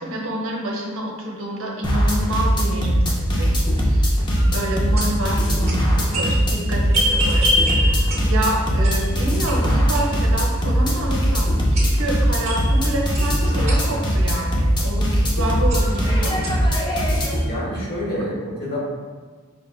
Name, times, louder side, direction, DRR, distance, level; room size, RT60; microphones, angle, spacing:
voice 1, 0.0-16.5, right 1 dB, 65° right, -1 dB, 0.7 m, -28 dB
sound 1, 1.8-17.4, equal, 20° left, 0.5 m, -20 dB
sound 2, 4.3-10.6 11.0-11.1 11.6-14.6 15.3-15.4 15.7-16.7, equal, 30° right, 0.8 m, -28 dB
voice 2, 17.5-18.8, equal, 45° left, -5 dB, 1.1 m, -27 dB
5.0 x 3.2 x 2.3 m, 1.5 s
head